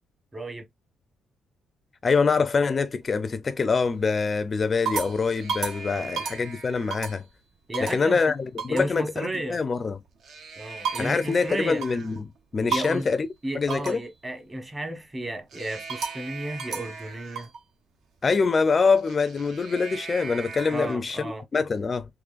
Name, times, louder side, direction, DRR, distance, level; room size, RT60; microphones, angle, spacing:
voice 1, 0.3-0.6 5.9-6.2 7.7-8.2 8.7-9.6 10.6-11.8 12.7-13.1 13.4-17.5 20.7-21.4, right 1 dB, 20° right, 1.1 m, -33 dB
voice 2, 2.0-7.3 7.8-10.0 11.0-12.2 12.5-13.3 13.5-14.0 18.2-22.1, left 4 dB, 35° left, 0.4 m, -24 dB
sound 1, 2.4-3.1 3.6-4.0 4.5-7.3 7.7-8.1 8.6-8.9 10.1-12.2 12.7-13.1 13.7-14.1 15.5-17.6 18.9-21.0, right 5 dB, 70° right, 0.8 m, -35 dB
3.7 x 3.1 x 2.4 m
cardioid pair, 90°, 0 cm